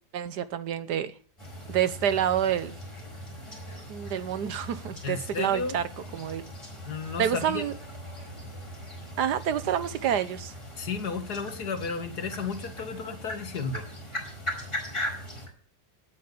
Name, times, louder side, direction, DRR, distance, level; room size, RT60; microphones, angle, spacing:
voice 1, 0.1-1.1 1.7-2.7 3.9-6.4 7.2-7.7 9.2-10.5, right 9 dB, 85° right, 13 dB, 1.6 m, -28 dB
sound 1, 1.4-15.5, equal, 15° left, 4.9 m, -39 dB
voice 2, 5.0-5.8 6.9-7.6 10.8-13.9, left 5 dB, 75° left, 8 dB, 2.3 m, -33 dB
17.5 x 8.3 x 6.7 m, 0.43 s
omnidirectional pair, 1.7 m